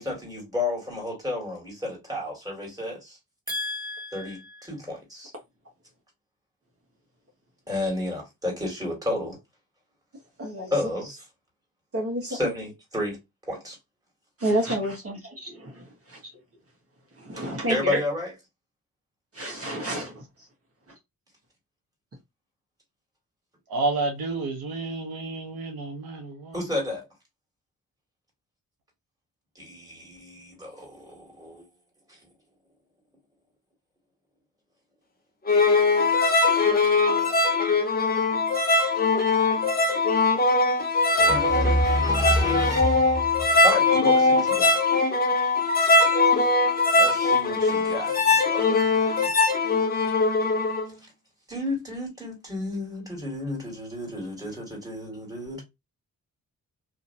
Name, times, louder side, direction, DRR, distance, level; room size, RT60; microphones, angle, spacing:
voice 1, 0.0-3.2 3.5-5.3 7.7-9.4 10.7-11.2 12.3-13.2 13.5-13.8 17.4-18.3 26.5-27.0 29.6-31.7 32.1-32.2 41.2-44.8 47.0-48.8 49.2-49.3 51.5-55.6, left 1 dB, 10° right, 1.9 m, -31 dB
voice 2, 10.4-10.7 11.9-12.5 14.4-16.2 17.2-18.0 19.3-20.2, equal, 40° right, 1.2 m, -29 dB
voice 3, 23.7-26.6, right 3 dB, 90° right, 1.0 m, -30 dB
sound 1, 35.5-50.8, left 3 dB, 25° left, 0.7 m, -21 dB
2.7 x 2.6 x 2.6 m
cardioid pair, 100°, 35 cm